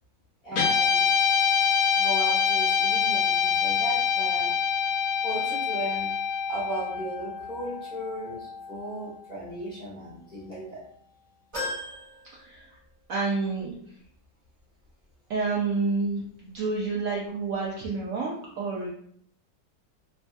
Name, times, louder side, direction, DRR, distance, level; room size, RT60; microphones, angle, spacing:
voice 1, 0.4-1.1 1.9-4.5 5.2-6.1 6.5-10.8, right 1 dB, 30° left, -8 dB, 1.0 m, -36 dB
Guitar, 0.5-9.0, left 7 dB, 70° left, 0.9 m, -25 dB
sound 1, 11.5-13.2 13.6-13.7 14.9-15.0, left 2 dB, 20° right, 0.9 m, -37 dB
voice 2, 13.1-13.7 15.3-18.9, right 3 dB, 90° right, -3 dB, 0.7 m, -29 dB
3.2 x 2.2 x 2.6 m, 0.63 s
omnidirectional pair, 2.0 m